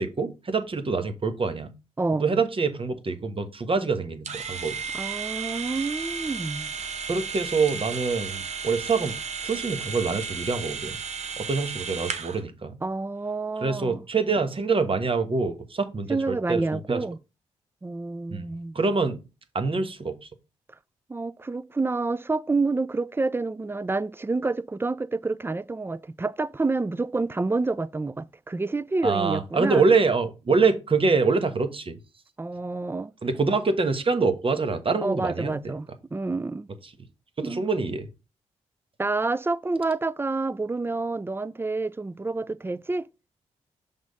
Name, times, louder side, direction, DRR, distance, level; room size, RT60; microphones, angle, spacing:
voice 1, 0.0-1.7 2.2-4.8 7.1-9.2 9.4-11.0 11.4-12.7 13.6-17.0 18.3-18.4 18.7-19.2 19.5-20.2 29.0-32.0 33.2-35.7 37.4-38.1, right 4 dB, 40° right, 1.2 m, -25 dB
voice 2, 2.0-2.3 4.9-6.7 12.8-14.0 16.1-17.2 17.8-18.8 21.1-29.8 32.4-33.1 35.0-36.7 37.4-37.6 39.0-43.1, right 3 dB, 15° right, 0.4 m, -28 dB
sound 1, 4.2-12.4, right 6 dB, 55° right, 0.9 m, -34 dB
6.2 x 3.7 x 5.2 m
supercardioid pair, 45°, 14 cm